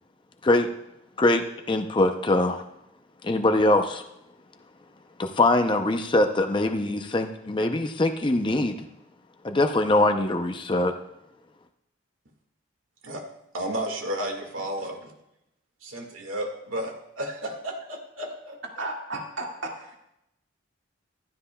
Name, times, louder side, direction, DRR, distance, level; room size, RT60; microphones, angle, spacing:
voice 1, 1.2-2.6 3.2-4.0 5.2-8.9 9.4-10.9, left 2 dB, 25° left, 5 dB, 0.6 m, -23 dB
voice 2, 13.5-15.1 15.8-18.8, right 1 dB, 80° right, 3 dB, 1.8 m, -33 dB
voice 3, 18.8-20.0, right 2 dB, 60° right, -1 dB, 2.0 m, -34 dB
15.0 x 12.0 x 2.3 m, 0.85 s
head